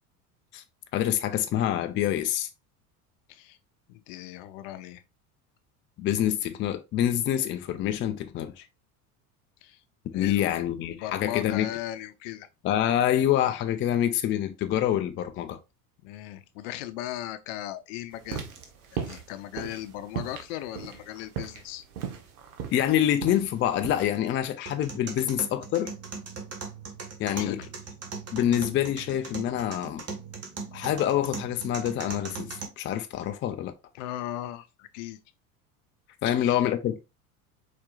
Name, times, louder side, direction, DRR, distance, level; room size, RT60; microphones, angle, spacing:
voice 1, 0.9-2.5 6.0-8.6 10.1-11.7 12.6-15.6 22.7-25.9 27.2-27.6 28.3-30.0 30.7-33.7 36.2-37.0, left 11 dB, 25° left, 0.4 m, -26 dB
voice 2, 3.9-5.0 9.6-9.8 10.1-10.6 10.8-12.5 16.0-18.4 18.9-21.8 27.3-27.7 33.9-35.2 36.3-36.6, left 13 dB, 55° left, 0.7 m, -37 dB
sound 1, 18.2-24.1, right 8 dB, 70° right, 1.3 m, -37 dB
sound 2, 24.7-32.6, right 5 dB, 30° right, 1.6 m, -39 dB
5.1 x 4.3 x 2.4 m
hypercardioid pair, 80°, 45 cm